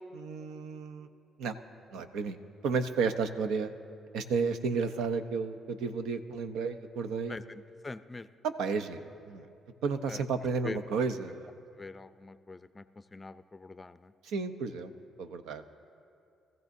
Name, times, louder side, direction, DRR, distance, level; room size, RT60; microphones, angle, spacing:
voice 1, 0.1-1.1 1.4-1.6 1.9-2.4 2.6-3.7 4.1-7.4 8.4-9.5 9.8-11.5 14.2-14.9 15.2-15.6, right 5 dB, 90° right, 9 dB, 0.7 m, -32 dB
voice 2, 7.3-8.3 10.1-10.2 10.6-10.8 11.8-12.8 13.1-14.1, left 3 dB, 25° left, 13 dB, 0.4 m, -43 dB
23.0 x 15.0 x 2.7 m, 2.5 s
cardioid pair, 90°, 0 cm